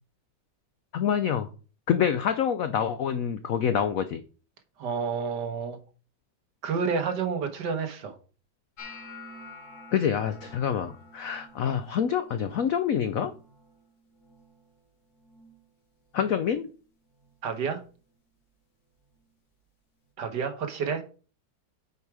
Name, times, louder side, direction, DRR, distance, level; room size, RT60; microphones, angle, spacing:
voice 1, 0.9-1.5 1.9-4.2 9.9-13.3 16.1-16.7, left 8 dB, 80° left, 0.7 m, -26 dB
voice 2, 4.8-5.8 6.6-8.2 17.4-17.8 20.2-21.0, right 6 dB, 60° right, 1.7 m, -29 dB
sound 1, 8.8-14.9 15.1-15.7 16.0-16.5 17.2-17.4 19.1-19.2, left 2 dB, 50° left, 2.0 m, -49 dB
8.1 x 4.7 x 4.8 m
omnidirectional pair, 2.1 m